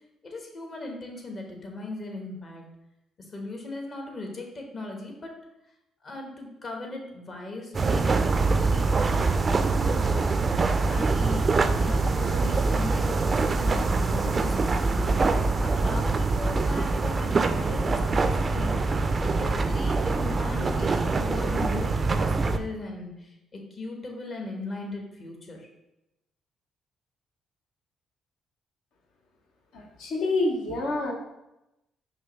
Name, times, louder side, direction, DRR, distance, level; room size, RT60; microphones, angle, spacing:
voice 1, 0.2-2.6 3.3-5.3 6.0-9.2 9.5-11.5 11.7-18.8 19.2-25.7, left 2 dB, 50° left, 2 dB, 1.0 m, -38 dB
sound 1, 7.7-22.6, right 3 dB, 40° right, 0.3 m, -24 dB
voice 2, 29.7-31.1, left 2 dB, 75° left, 1 dB, 0.8 m, -27 dB
5.4 x 2.3 x 3.1 m, 0.91 s
hypercardioid pair, 50°, 0 cm